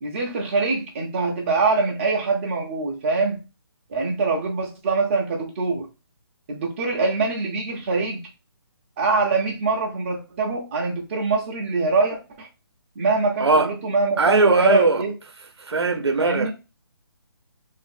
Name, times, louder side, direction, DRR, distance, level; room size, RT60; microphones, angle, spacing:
voice 1, 0.0-3.4 3.9-5.9 6.5-8.3 9.0-12.5 13.0-15.1 16.2-16.5, right 3 dB, 30° right, 0.5 m, -23 dB
voice 2, 14.2-15.0 15.6-16.5, right 3 dB, 90° right, 0.6 m, -19 dB
2.5 x 2.4 x 2.6 m
figure-of-eight pair, 155°, 13 cm